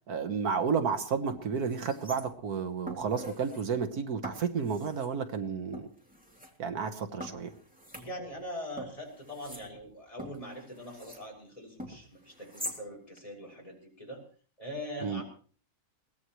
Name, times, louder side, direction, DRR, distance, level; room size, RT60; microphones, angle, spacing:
voice 1, 0.1-5.9 6.6-7.5 15.0-15.2, right 6 dB, 80° right, 8 dB, 1.8 m, -31 dB
sound 1, 0.8-0.9 1.3-2.5 2.9-3.7 4.2-5.1 5.7-6.5 7.2-8.5 8.8-11.3 11.8-12.8 13.2-13.3, equal, 5° right, 2.9 m, -45 dB
voice 2, 7.9-14.2 14.6-15.2, equal, 20° left, 0 dB, 6.9 m, -42 dB
22.5 x 18.0 x 3.2 m, 0.41 s
omnidirectional pair, 1.6 m